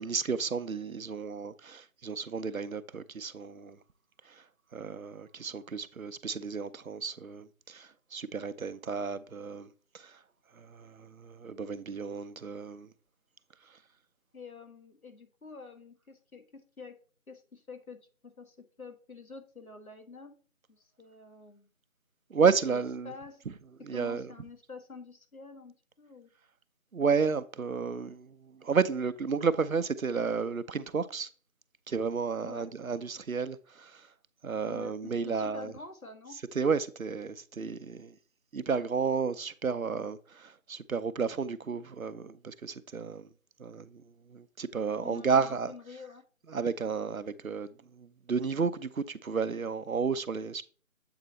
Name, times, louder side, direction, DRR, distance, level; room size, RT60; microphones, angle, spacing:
voice 1, 0.0-3.8 4.7-9.7 9.9-10.1 10.6-12.9 22.3-23.1 23.8-24.3 26.9-31.3 31.9-34.1 34.4-35.7 36.5-38.1 38.5-43.3 43.6-44.0 44.3-45.7 46.5-50.6, right 5 dB, 80° right, 0.7 m, -32 dB
voice 2, 14.3-16.4 16.8-17.0 17.3-18.0 18.2-20.3 20.7-21.7 22.6-23.4 23.9-26.3 32.4-32.7 34.7-36.4 45.0-46.2, left 4 dB, 90° left, 1.8 m, -48 dB
8.1 x 3.9 x 4.1 m
figure-of-eight pair, 175°, 41 cm